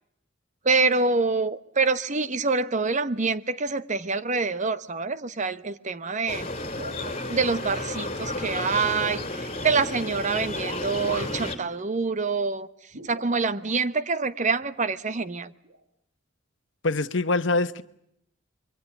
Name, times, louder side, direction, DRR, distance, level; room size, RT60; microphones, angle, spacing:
voice 1, 0.6-6.5 7.3-12.7 13.0-15.5, right 4 dB, 40° right, 1.0 m, -26 dB
sound 1, 6.3-11.6, left 2 dB, 30° left, 3.2 m, -32 dB
sound 2, 6.6-7.7 8.1-9.2 9.5-9.8 10.6-11.5 11.8-11.9 12.9-13.8 14.6-14.7 15.6-15.8, right 2 dB, 70° right, 2.7 m, -42 dB
voice 2, 16.8-17.8, left 3 dB, 70° left, 1.1 m, -24 dB
26.5 x 23.5 x 7.1 m
head